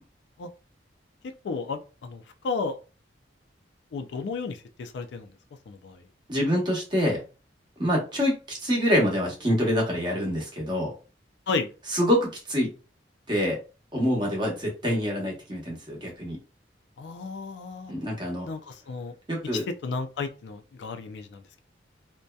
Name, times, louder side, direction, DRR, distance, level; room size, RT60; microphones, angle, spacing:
voice 1, 1.4-2.8 3.9-5.3 5.7-6.0 11.5-11.7 17.0-17.9 18.5-19.1 19.5-21.4, left 4 dB, 70° left, 0.3 m, -33 dB
voice 2, 6.3-7.2 7.8-10.9 11.9-12.7 13.3-13.6 13.9-16.4 17.9-18.5 19.3-19.6, equal, 25° right, 0.8 m, -26 dB
2.6 x 2.1 x 2.2 m
head